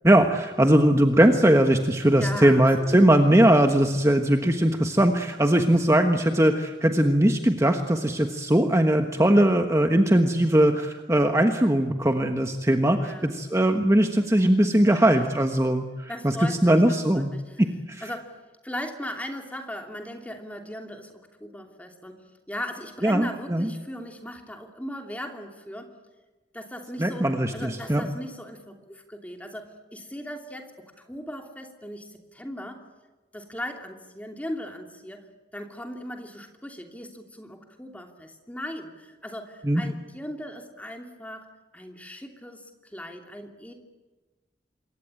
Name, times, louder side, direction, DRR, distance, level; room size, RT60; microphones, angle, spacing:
voice 1, 0.0-17.3 17.6-18.1 23.0-23.7 27.0-28.0 39.6-39.8, right 1 dB, 15° right, 5 dB, 1.3 m, -20 dB
voice 2, 2.2-3.0 13.0-13.3 14.9-15.3 16.1-17.6 18.0-18.4 18.6-25.9 26.5-32.8 33.3-43.7, equal, 10° left, 3 dB, 2.8 m, -38 dB
27.0 x 22.5 x 9.0 m, 1.2 s
head